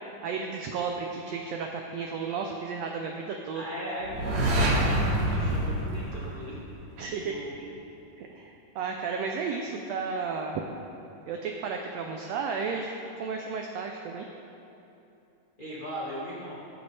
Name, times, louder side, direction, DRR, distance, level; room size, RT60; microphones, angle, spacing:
voice 1, 0.2-3.7 7.0-7.4 8.2-10.6 11.3-12.9 13.2-14.3, right 5 dB, 85° right, 2 dB, 1.5 m, -33 dB
voice 2, 3.5-6.6 7.0-7.7 15.6-16.6, equal, 20° left, -9 dB, 1.4 m, -38 dB
sound 1, 4.0-6.9, right 1 dB, 60° right, 2.6 m, -26 dB
18.0 x 7.0 x 3.3 m, 2.8 s
omnidirectional pair, 3.7 m